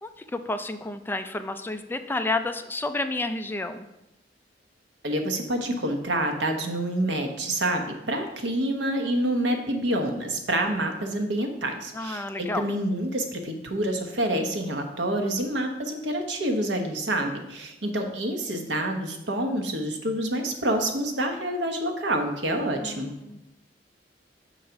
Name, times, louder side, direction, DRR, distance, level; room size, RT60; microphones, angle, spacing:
voice 1, 0.0-3.9 11.9-12.7 22.8-23.4, left 2 dB, 10° left, 9 dB, 0.3 m, -30 dB
voice 2, 5.0-23.1, right 1 dB, 85° right, 5 dB, 1.0 m, -27 dB
6.3 x 4.0 x 5.7 m, 0.90 s
head